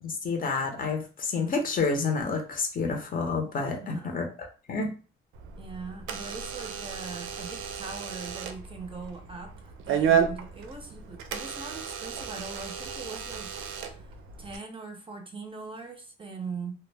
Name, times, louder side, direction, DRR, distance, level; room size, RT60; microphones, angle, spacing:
voice 1, 0.0-4.3 4.7-4.9, left 4 dB, 45° left, 0.7 m, -29 dB
voice 2, 3.8-4.2 5.6-13.5 13.8-14.1 14.4-16.7, right 4 dB, 25° right, 0.5 m, -41 dB
Door / Alarm, 5.3-14.6, right 7 dB, 85° right, 0.4 m, -32 dB
2.1 x 2.0 x 3.3 m
cardioid pair, 90°, 20 cm